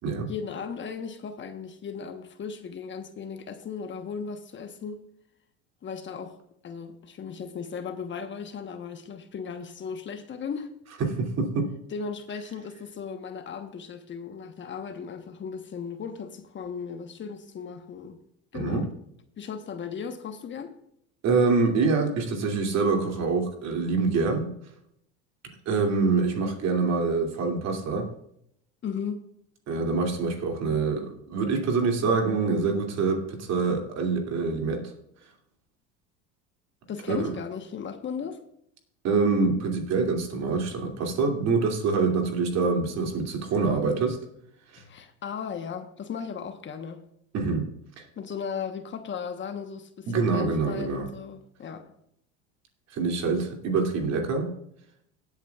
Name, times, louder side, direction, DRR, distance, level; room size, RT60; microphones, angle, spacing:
voice 1, 0.3-5.0 5.8-6.4 6.6-10.7 11.9-18.2 18.5-18.9 19.4-20.7 28.8-29.2 36.9-38.4 44.8-47.0 48.2-51.9, left 6 dB, 35° left, 1.1 m, -36 dB
voice 2, 11.0-11.7 18.5-18.8 21.2-24.5 25.7-28.1 29.7-34.8 37.1-37.3 39.0-44.2 44.7-44.8 47.3-47.7 48.0-48.1 50.1-51.1 52.9-54.5, right 4 dB, 50° right, 2.8 m, -25 dB
18.0 x 8.5 x 2.4 m
hypercardioid pair, 85°, 35 cm